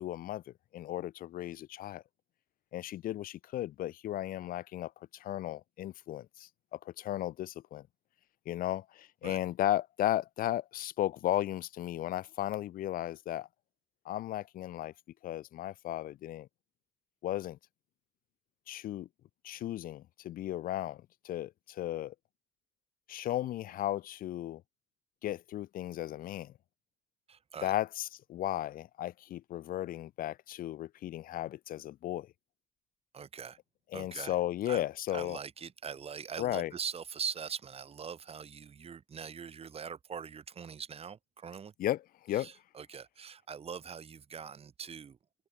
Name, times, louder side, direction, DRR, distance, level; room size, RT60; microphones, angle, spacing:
voice 1, 0.0-2.0 2.7-7.9 8.5-13.5 14.0-14.9 15.2-16.5 17.2-17.6 18.7-19.1 19.4-22.1 23.1-24.6 25.2-26.5 27.6-32.3 33.9-35.4 36.4-36.7 41.8-42.5, left 13 dB, 85° left, 0.9 m, -35 dB
voice 2, 27.3-27.7 33.1-33.6 33.9-34.4 34.7-34.8 35.1-41.7 42.3-45.2, right 7 dB, 45° right, 0.9 m, -42 dB
cardioid pair, 80°, 14 cm